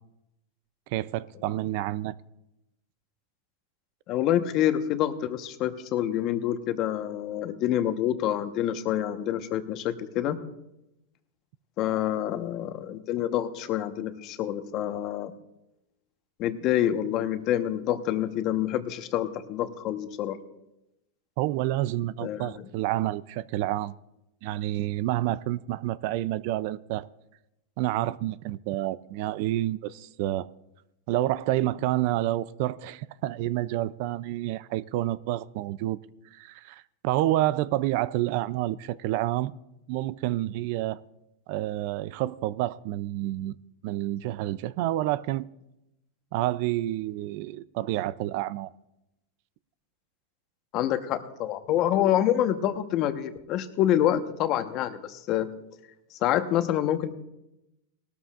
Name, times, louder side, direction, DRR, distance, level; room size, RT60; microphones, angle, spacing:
voice 1, 0.9-2.1 21.4-23.9 24.4-27.1 27.8-30.5 31.1-36.0 36.3-39.5 39.9-41.0 41.5-43.6 43.8-45.5 46.3-48.7, right 15 dB, 60° right, 0.4 m, -29 dB
voice 2, 4.1-10.4 11.8-15.3 16.4-20.4 22.2-22.6 50.7-55.5 56.1-57.1, left 11 dB, 45° left, 1.1 m, -27 dB
19.0 x 13.0 x 2.5 m
hypercardioid pair, 120°, 0 cm